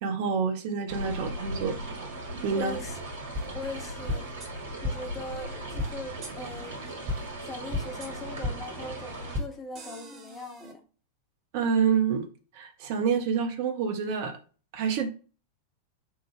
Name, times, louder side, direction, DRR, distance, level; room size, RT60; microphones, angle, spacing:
voice 1, 0.0-1.8 2.4-2.7 11.5-12.3 12.5-14.4 14.7-15.1, right 6 dB, 50° right, 0.6 m, -27 dB
sound 1, 0.9-9.4, right 1 dB, 65° right, 1.4 m, -38 dB
voice 2, 2.6-3.0 3.5-4.3 4.8-10.8, left 2 dB, 25° left, 0.8 m, -41 dB
sound 2, 3.4-3.5 4.1-4.5 4.8-4.9 5.8-5.9 6.2-6.3 7.1-7.2 7.7-8.1 8.4-8.5 9.3-9.5 9.8-10.7, left 2 dB, 30° right, 0.9 m, -32 dB
4.4 x 2.1 x 3.2 m
figure-of-eight pair, 90°, 0 cm